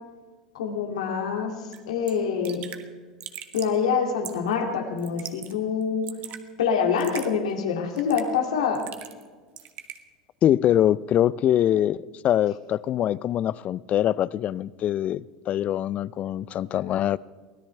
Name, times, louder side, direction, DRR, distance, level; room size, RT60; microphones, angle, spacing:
voice 1, 0.5-1.5 1.9-2.6 3.5-6.1 6.6-8.8, left 6 dB, 75° left, 2.4 m, -25 dB
Raindrop / Drip, 1.7-1.8 2.1-2.2 2.4-2.8 3.2-3.8 4.2-4.5 5.0-5.5 5.8-6.4 7.0-7.3 8.0-8.4 8.8-9.3 9.6-10.0, right 11 dB, 50° right, 1.4 m, -39 dB
voice 2, 10.4-17.2, left 11 dB, 40° left, 0.4 m, -23 dB
24.0 x 17.0 x 3.3 m
hypercardioid pair, 80°, 3 cm